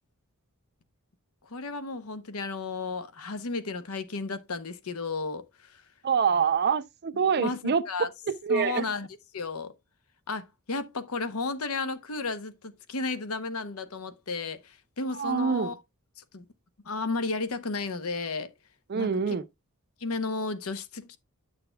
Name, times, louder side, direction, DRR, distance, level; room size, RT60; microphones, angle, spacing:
voice 1, 1.5-5.8 7.4-8.1 8.5-9.1 9.3-9.7 10.3-15.8 16.2-16.4 16.8-18.5 18.9-19.4 20.0-21.2, left 3 dB, 75° left, 0.9 m, -33 dB
voice 2, 6.0-7.8 8.4-8.9 15.1-15.7 18.9-19.4, right 6 dB, 50° right, 0.5 m, -25 dB
10.0 x 6.6 x 2.2 m
head